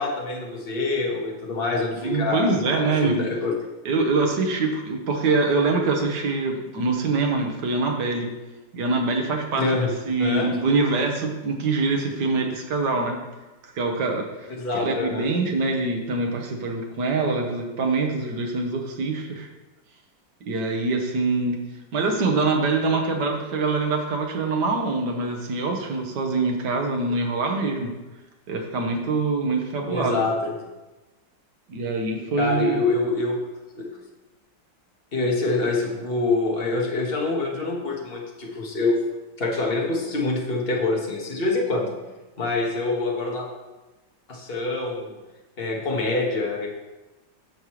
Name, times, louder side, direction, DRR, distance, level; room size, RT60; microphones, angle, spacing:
voice 1, 0.0-3.5 9.6-9.9 10.2-10.5 14.6-15.3 29.9-30.5 32.4-33.4 33.8-33.9 35.1-39.0 39.4-41.9 42.4-43.5 44.3-45.2 45.6-46.7, left 3 dB, 30° left, -2 dB, 1.6 m, -25 dB
voice 2, 2.0-3.3 3.9-8.3 8.7-13.2 13.6-19.5 20.5-21.6 21.9-28.0 28.5-30.2 31.7-32.8, right 3 dB, 65° right, 1 dB, 1.8 m, -24 dB
15.0 x 5.4 x 3.2 m, 1.1 s
omnidirectional pair, 2.0 m